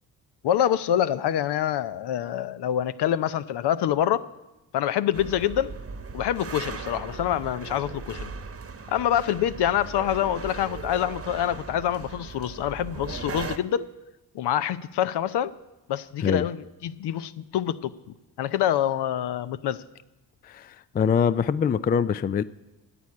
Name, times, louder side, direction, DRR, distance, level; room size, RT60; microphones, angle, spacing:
voice 1, 0.4-4.2 4.7-5.7 6.1-8.3 8.9-13.9 14.3-15.5 15.9-17.9 18.4-19.8, left 10 dB, 60° left, 14 dB, 0.7 m, -26 dB
sound 1, 5.1-13.6, right 4 dB, 30° right, 1.1 m, -38 dB
voice 2, 20.4-22.4, left 7 dB, 20° left, 16 dB, 0.4 m, -24 dB
11.0 x 8.4 x 8.6 m, 1.0 s
hypercardioid pair, 50°, 46 cm